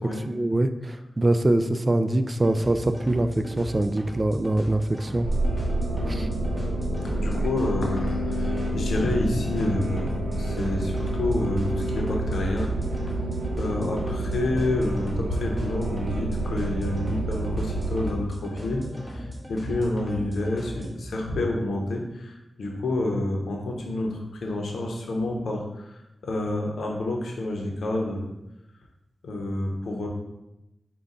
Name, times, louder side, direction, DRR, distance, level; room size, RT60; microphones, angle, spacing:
voice 1, 0.0-5.3 6.1-6.3 7.4-7.5, right 1 dB, 35° right, 9 dB, 0.3 m, -24 dB
sound 1, 2.4-20.9, equal, 5° right, 1.3 m, -38 dB
sound 2, 5.2-18.1, right 1 dB, 75° right, 0.6 m, -28 dB
voice 2, 6.0-6.3 6.9-12.7 13.5-28.3 29.2-30.1, left 2 dB, 85° left, 1 dB, 0.7 m, -29 dB
5.2 x 2.2 x 3.7 m, 0.93 s
cardioid pair, 45°, 0 cm